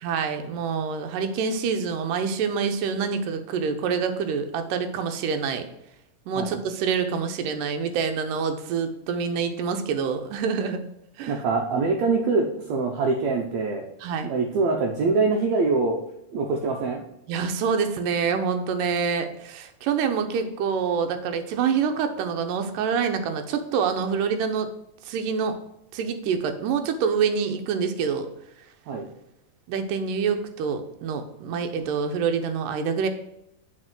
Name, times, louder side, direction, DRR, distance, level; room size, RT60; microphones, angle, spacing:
voice 1, 0.0-5.7 6.3-10.8 11.2-11.4 14.0-14.3 17.3-24.7 25.0-25.6 25.9-28.3 29.7-33.1, right 6 dB, 90° right, 7 dB, 2.4 m, -26 dB
voice 2, 11.3-13.8 14.2-16.0 16.3-17.0 28.9-29.1, right 4 dB, 70° right, -1 dB, 1.9 m, -24 dB
6.6 x 4.2 x 6.0 m, 0.80 s
omnidirectional pair, 3.7 m